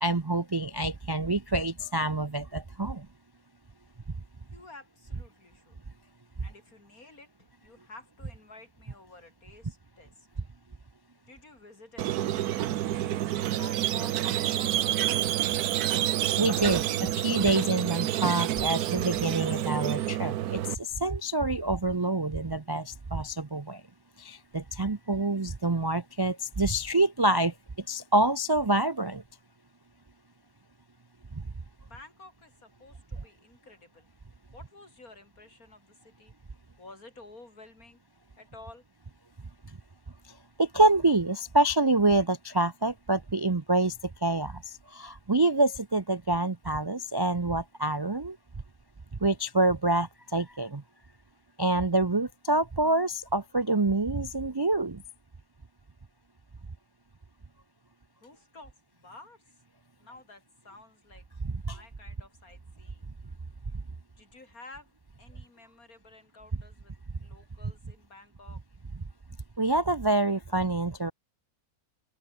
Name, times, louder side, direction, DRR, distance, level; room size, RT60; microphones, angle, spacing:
voice 1, 0.0-3.1 16.4-23.8 24.2-27.5 27.9-29.2 31.3-31.4 40.6-48.4 49.2-50.8 51.6-55.0 61.4-61.8 69.6-71.1, right 2 dB, 30° right, 0.4 m, -27 dB
voice 2, 4.5-5.8 6.4-10.3 11.3-15.0 31.8-34.1 34.5-36.3 36.8-38.0 38.4-38.8 58.2-59.4 60.0-61.3 61.7-63.1 64.2-64.9 65.2-66.9 67.2-68.6, left 2 dB, 70° left, 5.5 m, -51 dB
Squeak, 12.0-20.8, right 12 dB, 90° right, 1.3 m, -28 dB
open air
omnidirectional pair, 1.6 m